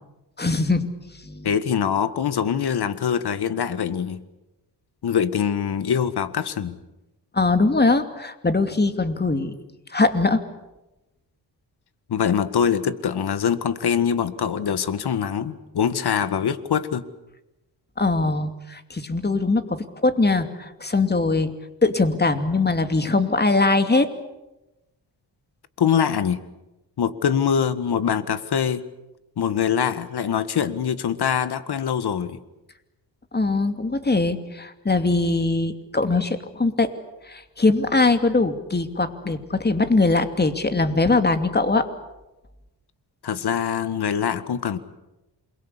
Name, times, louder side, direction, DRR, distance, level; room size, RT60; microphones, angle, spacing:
voice 1, 0.4-0.9 1.2-1.5 7.3-9.5 9.9-10.4 18.0-21.5 21.8-24.1 33.3-36.9 37.3-41.9, left 3 dB, 25° left, 8 dB, 2.7 m, -21 dB
voice 2, 1.4-4.2 5.0-6.8 12.1-17.1 25.8-26.4 27.0-28.8 29.4-32.4 43.2-44.8, left 8 dB, 65° left, 13 dB, 1.9 m, -23 dB
28.5 x 22.0 x 8.5 m, 1.0 s
cardioid pair, 85°, 42 cm